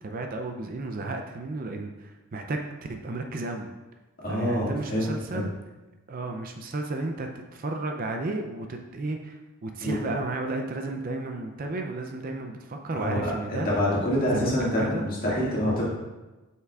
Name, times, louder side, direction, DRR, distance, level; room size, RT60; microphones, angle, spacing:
voice 1, 0.0-3.7 4.3-5.5 6.1-13.7 14.3-15.0, right 2 dB, 40° right, 4 dB, 0.4 m, -33 dB
voice 2, 4.2-5.5 9.8-10.0 12.9-15.8, equal, 40° left, -6 dB, 2.0 m, -26 dB
7.8 x 5.6 x 2.4 m, 1.1 s
head